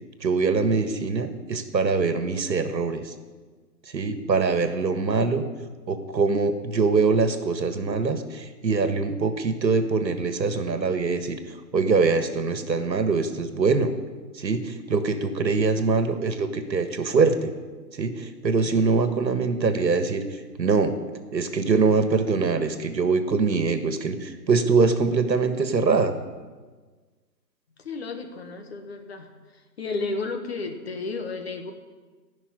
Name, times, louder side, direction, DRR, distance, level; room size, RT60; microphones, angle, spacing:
voice 1, 0.2-3.1 3.9-5.4 5.9-11.4 11.7-13.9 14.4-17.5 18.0-20.2 20.6-21.0 21.3-26.1, right 4 dB, 85° right, 9 dB, 1.8 m, -23 dB
voice 2, 27.8-29.3 29.8-31.7, left 3 dB, 40° left, 5 dB, 1.6 m, -32 dB
15.0 x 6.1 x 9.7 m, 1.4 s
hypercardioid pair, 165°, 50 cm